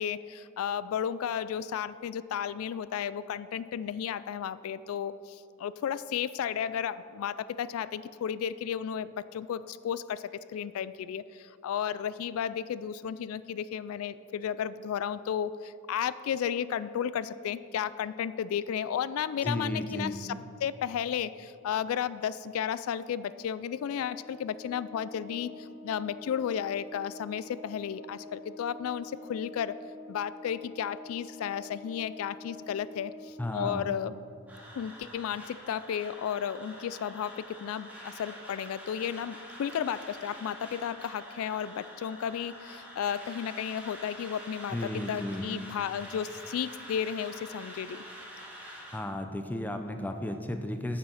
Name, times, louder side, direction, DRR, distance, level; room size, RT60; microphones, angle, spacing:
voice 1, 0.0-29.8 30.1-34.2 34.8-48.0, left 8 dB, 80° left, 16 dB, 0.3 m, -33 dB
voice 2, 19.4-20.1 33.4-33.9 44.7-45.4 48.9-51.0, left 1 dB, 10° left, 6 dB, 0.5 m, -34 dB
Organ, 23.7-34.4, left 2 dB, 50° left, 1.3 m, -47 dB
sound 1, 34.5-48.9, equal, 5° right, 2.2 m, -46 dB
9.1 x 7.4 x 6.3 m, 2.5 s
head